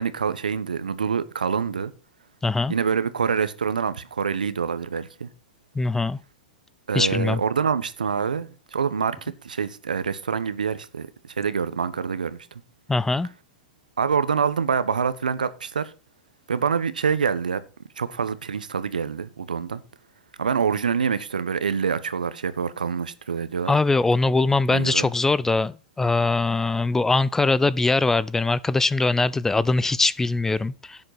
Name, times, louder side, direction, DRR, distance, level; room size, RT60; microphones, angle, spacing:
voice 1, 0.0-1.9 2.7-5.3 6.9-12.4 14.0-15.9 16.5-17.6 18.0-19.8 20.4-23.7 24.7-25.1, right 6 dB, 90° right, 1.1 m, -26 dB
voice 2, 2.4-2.7 5.8-6.2 6.9-7.4 12.9-13.3 23.7-31.0, left 3 dB, 10° left, 0.5 m, -22 dB
11.0 x 7.8 x 5.8 m
hypercardioid pair, 110°, 4 cm